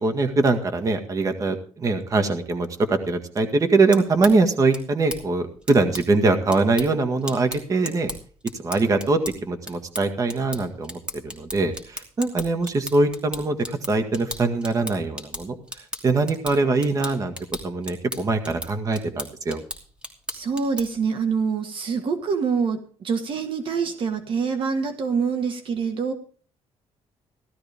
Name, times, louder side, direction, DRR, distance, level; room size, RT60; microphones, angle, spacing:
voice 1, 0.0-8.1 8.6-15.6 16.0-17.3 17.6-19.6, right 3 dB, 30° right, 6 dB, 1.8 m, -22 dB
sound 1, 3.7-21.1, equal, 10° right, 2.8 m, -38 dB
voice 2, 20.3-26.1, right 5 dB, 50° right, 7 dB, 1.6 m, -25 dB
16.0 x 13.0 x 3.6 m, 0.42 s
cardioid pair, 120°, 11 cm